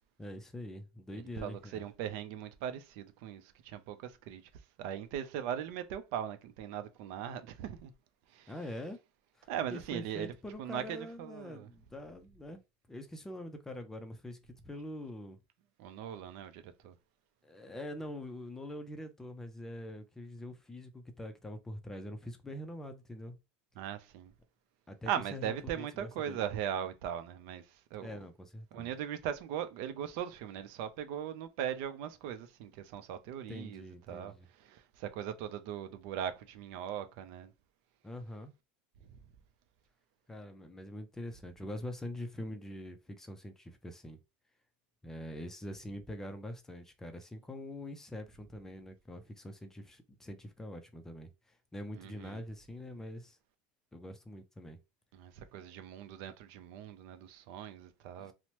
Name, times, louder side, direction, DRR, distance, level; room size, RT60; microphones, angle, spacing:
voice 1, 0.2-1.8 8.5-9.0 9.4-12.6 12.9-14.4 14.6-15.4 17.4-23.4 24.9-26.4 28.0-28.9 33.5-34.5 38.0-38.5 40.3-44.2 45.0-53.4 53.9-54.8, left 1 dB, 10° left, 0.4 m, -44 dB
voice 2, 1.1-4.4 4.8-7.9 8.3-8.5 9.5-10.3 10.6-11.7 15.8-16.9 23.8-24.3 25.1-27.6 27.9-28.2 28.7-34.3 34.6-37.5 52.0-52.4 55.1-58.3, right 9 dB, 60° right, 0.5 m, -39 dB
2.9 x 2.0 x 2.9 m
supercardioid pair, 130°, 5 cm